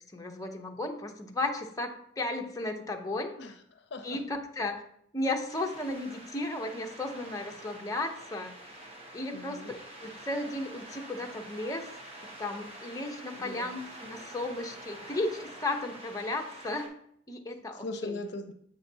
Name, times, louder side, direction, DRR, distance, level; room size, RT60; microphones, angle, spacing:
voice 1, 0.1-3.3 4.0-4.8 5.1-8.5 9.1-11.9 12.4-16.9 17.3-18.2, left 2 dB, 20° left, 2 dB, 0.7 m, -34 dB
voice 2, 3.4-4.2 9.3-9.7 13.4-13.8 17.7-18.5, left 2 dB, 65° left, 7 dB, 0.6 m, -40 dB
sound 1, 5.5-16.9, right 1 dB, 35° right, 1.1 m, -47 dB
7.3 x 5.6 x 2.7 m, 0.68 s
head